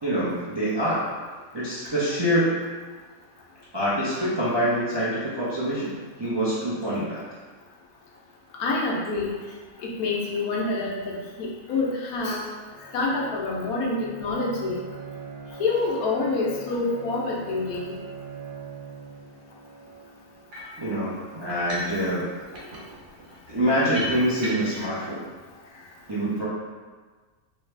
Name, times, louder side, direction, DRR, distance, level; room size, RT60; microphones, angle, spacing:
voice 1, 0.0-1.0 1.5-2.6 3.7-7.2 20.8-22.3 23.5-25.2 26.1-26.5, equal, 30° right, -10 dB, 0.5 m, -25 dB
voice 2, 8.6-9.4 9.8-12.4 12.9-14.8 15.6-18.0 24.8-25.0, left 3 dB, 75° left, -3 dB, 1.2 m, -27 dB
Bowed string instrument, 12.7-20.5, right 5 dB, 90° right, 0.4 m, -41 dB
sound 1, 20.5-20.8 21.5-22.0 22.3-24.9, equal, 60° right, 1.1 m, -36 dB
3.4 x 3.2 x 3.2 m, 1.4 s
omnidirectional pair, 1.6 m